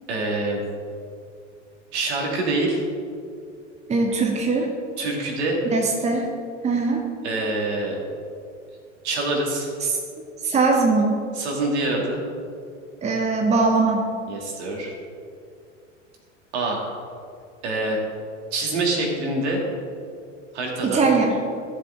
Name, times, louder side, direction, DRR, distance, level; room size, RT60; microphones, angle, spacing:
voice 1, 0.1-0.6 1.9-2.8 5.0-5.6 7.2-8.0 9.0-9.7 11.3-12.2 14.3-14.9 16.5-16.8 17.6-18.0 18.5-19.6 20.5-21.0, right 2 dB, 60° right, 0 dB, 2.5 m, -25 dB
voice 2, 3.9-4.7 5.6-6.3 6.6-7.0 9.8-9.9 10.4-11.2 13.0-14.0 20.8-21.3, right 3 dB, 20° right, 2 dB, 1.1 m, -21 dB
15.0 x 7.4 x 3.8 m, 2.3 s
figure-of-eight pair, 80°, 37 cm